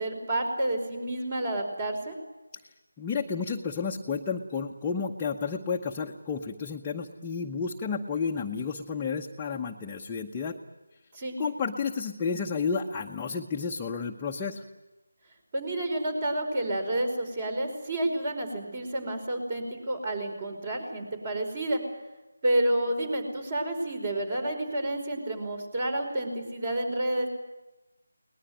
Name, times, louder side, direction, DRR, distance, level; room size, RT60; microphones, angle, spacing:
voice 1, 0.0-2.2 11.1-11.4 15.5-21.8 22.4-27.3, right 1 dB, 30° right, 7 dB, 4.9 m, -29 dB
voice 2, 3.0-10.6 11.4-14.6, left 5 dB, 10° left, -2 dB, 0.9 m, -31 dB
23.0 x 19.5 x 9.0 m, 1.0 s
figure-of-eight pair, 165°, 0 cm